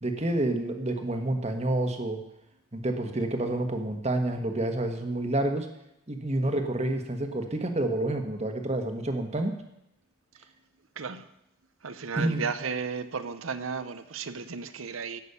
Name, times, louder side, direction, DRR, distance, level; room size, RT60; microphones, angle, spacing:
voice 1, 0.0-2.2 2.7-5.7 6.1-9.5 12.2-12.4, right 1 dB, 30° right, 1.3 m, -28 dB
voice 2, 11.0-11.3 11.8-15.2, right 5 dB, 80° right, 0.8 m, -34 dB
16.5 x 6.3 x 6.9 m
head